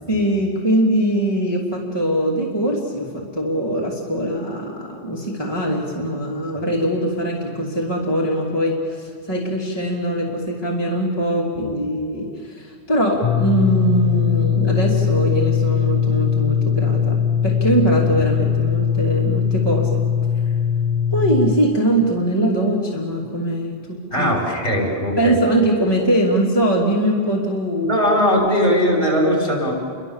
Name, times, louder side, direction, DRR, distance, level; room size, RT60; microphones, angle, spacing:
voice 1, 0.1-20.0 21.1-24.3 25.2-28.0, right 1 dB, 25° left, -3 dB, 2.8 m, -22 dB
voice 2, 11.6-11.9 24.1-25.4 27.8-29.7, equal, 60° left, 0 dB, 5.9 m, -19 dB
sound 1, 13.2-21.5, left 7 dB, 40° left, 1.1 m, -20 dB
30.0 x 23.5 x 7.3 m, 2.2 s
omnidirectional pair, 1.1 m